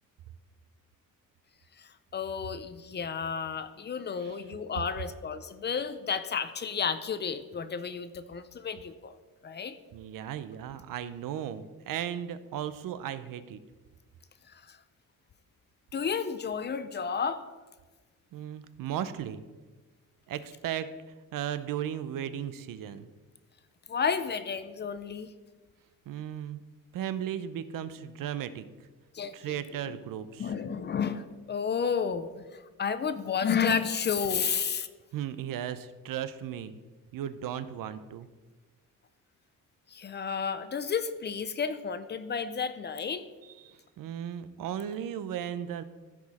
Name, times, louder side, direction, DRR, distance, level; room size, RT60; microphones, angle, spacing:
voice 1, 1.8-9.1 9.4-9.8 14.5-14.8 15.9-17.4 23.9-25.3 29.1-29.6 29.9-30.0 30.4-34.9 39.9-43.2, left 6 dB, 35° left, 12 dB, 0.4 m, -32 dB
voice 2, 9.9-13.6 18.3-19.4 20.3-20.9 21.3-23.1 26.1-26.6 26.9-28.7 29.3-30.5 35.1-36.8 37.1-38.3 43.4-45.8, right 10 dB, 75° right, 13 dB, 0.6 m, -36 dB
14.0 x 5.0 x 4.2 m, 1.3 s
wide cardioid pair, 165°, 33 cm